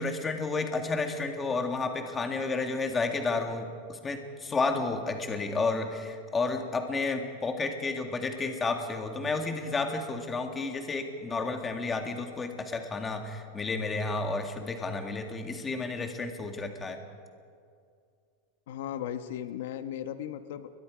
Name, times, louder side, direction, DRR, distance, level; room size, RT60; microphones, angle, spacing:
voice 1, 0.0-17.0, left 3 dB, 15° left, 4 dB, 1.9 m, -31 dB
voice 2, 18.7-20.7, left 10 dB, 75° left, 9 dB, 1.2 m, -36 dB
29.5 x 22.5 x 5.1 m, 2.3 s
supercardioid pair, 155°, 0 cm